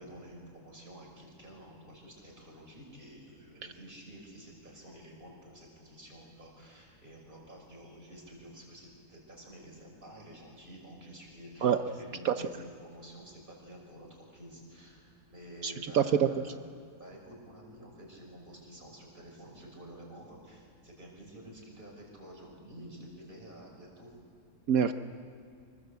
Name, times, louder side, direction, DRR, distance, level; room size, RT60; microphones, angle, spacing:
voice 1, 0.0-16.6 17.0-24.1, right 1 dB, 30° right, -1 dB, 6.1 m, -50 dB
voice 2, 15.6-16.3 24.7-24.9, right 8 dB, 65° right, 9 dB, 1.2 m, -25 dB
25.5 x 24.0 x 8.2 m, 2.2 s
omnidirectional pair, 1.7 m